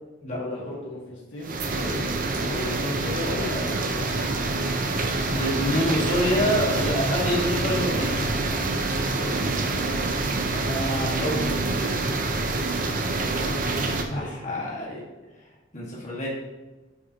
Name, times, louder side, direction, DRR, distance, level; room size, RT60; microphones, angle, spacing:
voice 1, 0.3-2.1 2.3-4.0 9.1-10.0 13.3-13.6 14.1-14.5, left 2 dB, 65° left, -4 dB, 1.7 m, -35 dB
sound 1, 1.4-14.0, right 3 dB, 45° right, 0.7 m, -26 dB
voice 2, 5.3-8.1 10.5-12.0 14.1-15.0 15.7-16.3, left 1 dB, 40° left, -5 dB, 1.7 m, -27 dB
8.8 x 5.6 x 2.9 m, 1.2 s
head